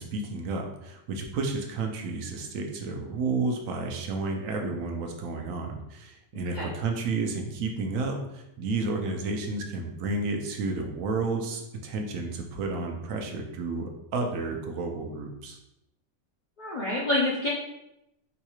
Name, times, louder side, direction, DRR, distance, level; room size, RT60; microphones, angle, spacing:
voice 1, 0.0-15.6, right 3 dB, 80° right, 2 dB, 1.0 m, -31 dB
voice 2, 16.6-17.5, left 2 dB, 60° left, -5 dB, 0.4 m, -27 dB
3.9 x 2.3 x 2.9 m, 0.86 s
omnidirectional pair, 1.4 m